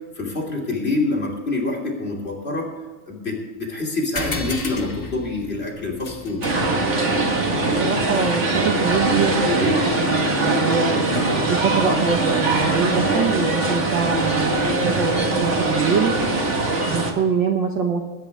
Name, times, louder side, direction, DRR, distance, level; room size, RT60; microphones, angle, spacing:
voice 1, 0.1-2.7 3.1-6.4, left 2 dB, 20° left, 0 dB, 2.8 m, -26 dB
sound 1, 4.2-9.1, left 3 dB, 85° left, 0.5 m, -35 dB
sound 2, 6.4-17.1, right 2 dB, 35° right, 1.2 m, -21 dB
voice 2, 7.8-10.9 11.5-16.1 16.9-18.0, right 6 dB, 70° right, 4 dB, 1.1 m, -24 dB
21.5 x 9.9 x 3.5 m, 1.3 s
omnidirectional pair, 3.4 m